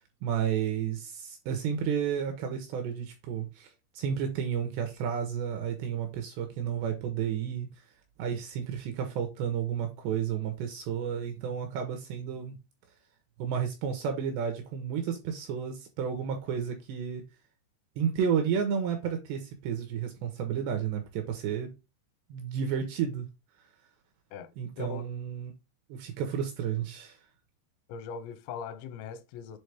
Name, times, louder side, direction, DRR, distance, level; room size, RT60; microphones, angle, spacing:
voice 1, 0.2-7.7 8.2-12.6 13.4-17.2 18.0-21.7 22.3-23.3 24.6-25.5 25.9-27.2, right 8 dB, 75° right, 2.6 m, -32 dB
voice 2, 24.3-25.0 27.9-29.6, left 7 dB, 90° left, 3.5 m, -40 dB
7.8 x 3.6 x 3.4 m
omnidirectional pair, 5.8 m